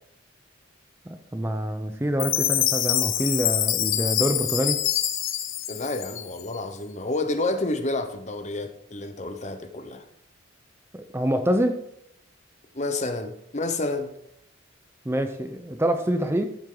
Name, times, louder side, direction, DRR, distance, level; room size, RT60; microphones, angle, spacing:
voice 1, 1.1-4.8 10.9-11.8 15.1-16.4, right 1 dB, 10° right, 7 dB, 0.6 m, -26 dB
Chime, 2.2-6.6, left 12 dB, 75° left, 0.8 m, -25 dB
voice 2, 5.7-10.0 12.7-14.1, left 2 dB, 35° left, 8 dB, 0.9 m, -29 dB
13.5 x 8.0 x 3.9 m, 0.75 s
head